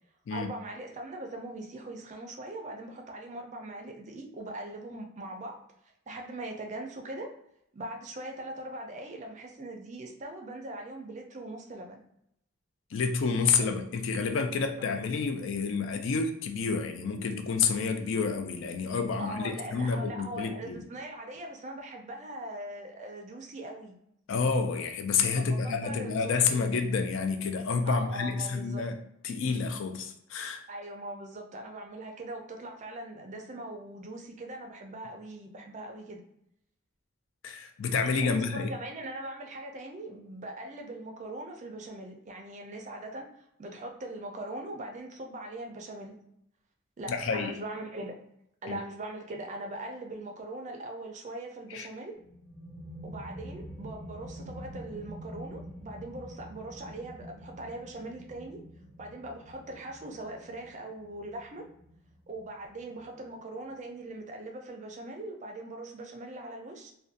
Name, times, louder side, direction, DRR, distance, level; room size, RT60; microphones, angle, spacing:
voice 1, 0.3-5.6 6.1-7.3 7.7-12.0 13.6-13.7 14.5-14.8 19.2-24.0 25.3-26.7 27.8-28.9 30.7-36.2 38.2-43.3 43.6-46.2 47.0-48.2 48.6-52.2 53.0-58.6 59.0-61.6 62.3-66.9, right 1 dB, 35° right, 2 dB, 0.4 m, -41 dB
voice 2, 12.9-20.8 24.3-28.9 29.2-30.6 37.4-38.7 47.1-47.6 48.7-48.8 51.7-51.9, left 5 dB, 65° left, 6 dB, 0.3 m, -29 dB
sound 1, 52.1-63.5, equal, 50° left, 0.8 m, -46 dB
2.6 x 2.2 x 2.4 m, 0.76 s
head